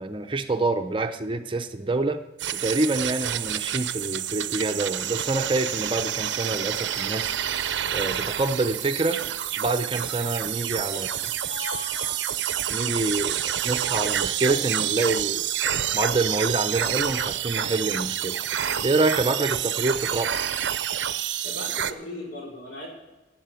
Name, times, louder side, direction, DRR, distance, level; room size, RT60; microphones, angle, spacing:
voice 1, 0.0-2.2 2.5-7.3 7.9-9.2 9.6-11.1 12.7-15.5 15.9-18.4 18.8-20.3, right 2 dB, 25° right, 7 dB, 0.6 m, -26 dB
sound 1, 2.4-21.9, right 10 dB, 75° right, 0.6 m, -28 dB
voice 2, 10.9-12.2 21.4-22.9, left 2 dB, 75° left, -3 dB, 4.7 m, -38 dB
11.5 x 7.7 x 9.0 m, 1.1 s
head